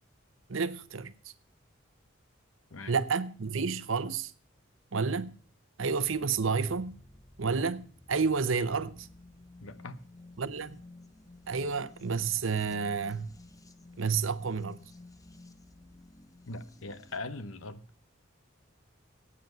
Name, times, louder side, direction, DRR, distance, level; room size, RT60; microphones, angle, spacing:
voice 1, 0.5-1.3 2.9-4.3 4.9-5.3 5.8-7.0 7.4-9.1 10.4-10.8 11.5-13.3 14.0-14.8, right 5 dB, 70° right, 0.8 m, -30 dB
sound 1, 6.0-17.2, left 2 dB, 20° left, 0.8 m, -54 dB
voice 2, 9.6-10.0 16.5-17.8, left 2 dB, 90° left, 1.0 m, -40 dB
8.9 x 8.0 x 9.2 m
head